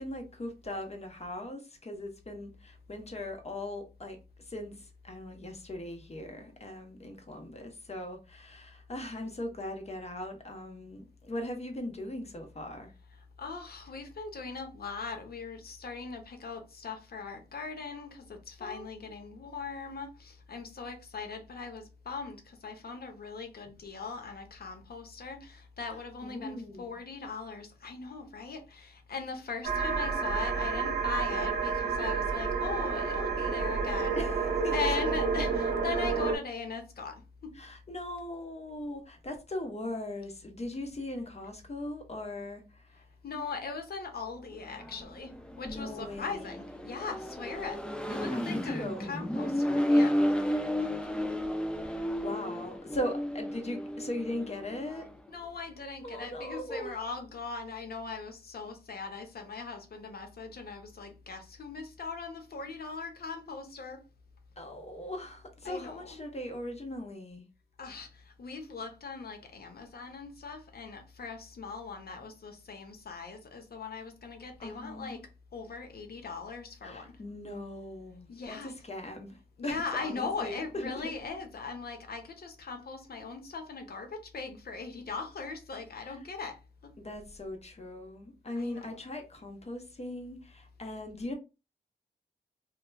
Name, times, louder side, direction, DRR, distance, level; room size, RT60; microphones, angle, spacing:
voice 1, 0.0-12.9 18.6-18.8 26.2-26.9 34.2-34.3 34.6-34.7 37.6-43.0 45.6-46.5 48.3-49.3 51.8-55.0 56.0-57.0 64.6-67.4 74.6-75.2 76.8-81.1 86.0-86.2 87.0-91.3, left 1 dB, 35° left, 0.9 m, -39 dB
voice 2, 13.4-34.3 34.7-37.6 43.2-47.8 48.1-50.9 55.3-64.0 65.6-66.2 67.8-75.2 75.5-77.2 78.3-78.7 79.6-86.9 88.6-89.0, left 4 dB, 60° left, 0.7 m, -40 dB
sound 1, 29.6-36.4, right 5 dB, 70° right, 0.7 m, -30 dB
Accelerating revving vroom, 44.7-55.1, equal, 5° left, 0.4 m, -32 dB
3.2 x 2.2 x 2.2 m
cardioid pair, 60°, 18 cm